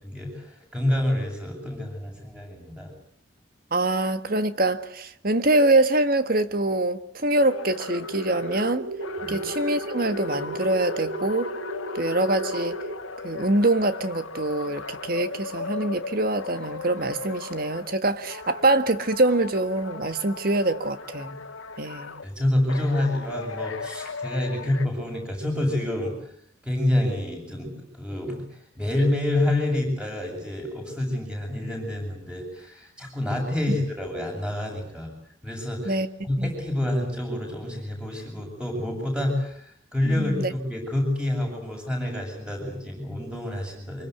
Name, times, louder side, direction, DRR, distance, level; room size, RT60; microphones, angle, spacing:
voice 1, 0.0-2.9 9.2-9.4 22.2-26.3 26.6-35.1 35.4-36.0 36.2-44.1, left 1 dB, 5° right, 8.0 m, -28 dB
voice 2, 3.7-8.9 9.3-11.5 11.9-12.8 13.2-21.4 21.8-22.2 33.7-33.8 35.9-36.1 36.4-36.5 40.0-40.5, right 2 dB, 45° right, 1.6 m, -24 dB
sound 1, 7.4-18.0 18.2-22.3 22.7-24.9, left 4 dB, 90° left, 1.9 m, -37 dB
sound 2, 7.9-12.9, right 1 dB, 85° right, 4.4 m, -34 dB
25.5 x 24.0 x 8.1 m
head